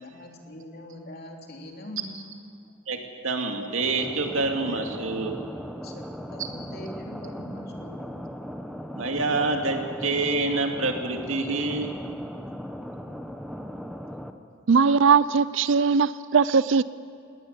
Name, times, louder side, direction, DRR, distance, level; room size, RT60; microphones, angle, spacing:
voice 1, 0.0-2.2 5.8-8.2, left 1 dB, 50° left, 1 dB, 3.2 m, -42 dB
voice 2, 2.9-5.4 6.4-6.5 9.0-11.9, right 3 dB, 85° right, 3 dB, 2.4 m, -27 dB
sound 1, 3.8-14.3, equal, ahead, 0.9 m, -38 dB
voice 3, 14.7-16.8, right 5 dB, 65° right, 17 dB, 0.5 m, -20 dB
19.5 x 18.5 x 9.7 m, 2.4 s
head